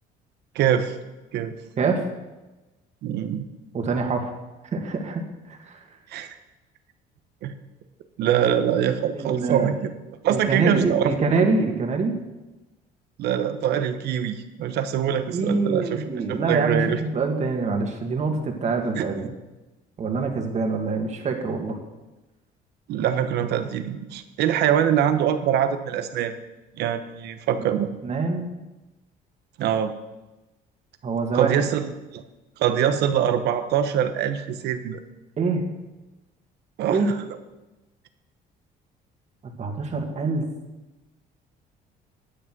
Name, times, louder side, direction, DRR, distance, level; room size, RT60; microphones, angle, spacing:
voice 1, 0.5-0.9 1.3-1.5 3.0-3.4 6.1-6.4 7.4-7.6 8.2-9.9 10.2-11.1 13.2-16.0 16.3-17.0 18.9-19.0 22.9-26.3 26.8-27.9 29.6-29.9 31.3-31.9 32.1-32.2 32.6-35.0 36.8-37.0, right 9 dB, 75° right, 10 dB, 1.1 m, -23 dB
voice 2, 3.7-4.3 4.7-5.8 9.1-9.7 10.3-12.1 15.1-19.3 20.0-21.8 28.0-28.5 31.0-31.6 35.4-35.7 36.9-37.1 39.4-40.5, right 4 dB, 40° right, 4 dB, 2.0 m, -25 dB
11.5 x 8.5 x 6.1 m, 1.1 s
cardioid pair, 110°, 17 cm